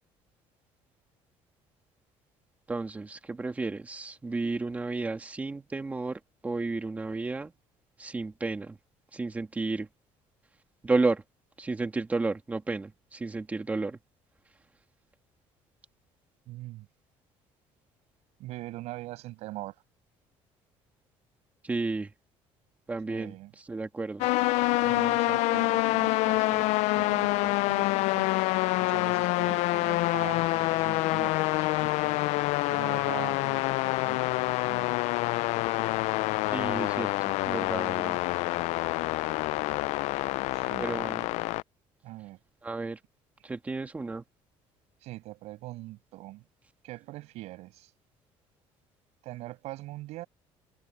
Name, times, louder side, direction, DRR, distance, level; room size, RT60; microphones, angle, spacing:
voice 1, 2.7-7.5 8.0-8.8 9.1-9.9 10.8-11.2 11.6-14.0 21.6-22.1 22.9-23.3 23.7-24.3 36.5-37.1 37.4-38.2 40.8-41.3 42.6-43.0 43.4-44.2, right 3 dB, 15° right, 2.0 m, -32 dB
voice 2, 16.5-16.9 18.4-19.8 23.1-23.5 24.8-28.3 28.8-32.2 32.7-35.0 40.5-40.9 42.0-42.4 45.0-46.4 46.8-47.9 49.2-50.3, right 18 dB, 70° right, 7.3 m, -42 dB
sound 1, 24.2-41.6, left 20 dB, 80° left, 0.4 m, -27 dB
cardioid pair, 175°, 11 cm